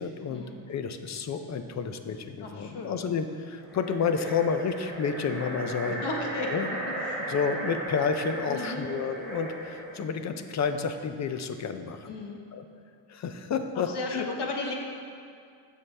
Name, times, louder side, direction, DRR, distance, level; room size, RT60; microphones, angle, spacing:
voice 1, 0.0-6.0 6.5-6.7 7.3-12.2 12.5-12.6 13.1-14.3, left 6 dB, 40° left, 8 dB, 0.5 m, -30 dB
voice 2, 2.4-2.9 5.9-6.5 7.1-7.8 8.5-8.9 12.1-12.4 13.9-14.7, left 3 dB, 60° left, 1 dB, 1.3 m, -35 dB
sound 1, 3.6-10.0, right 1 dB, ahead, 2.5 m, -36 dB
15.5 x 5.7 x 3.3 m, 2.3 s
cardioid pair, 165°, 48 cm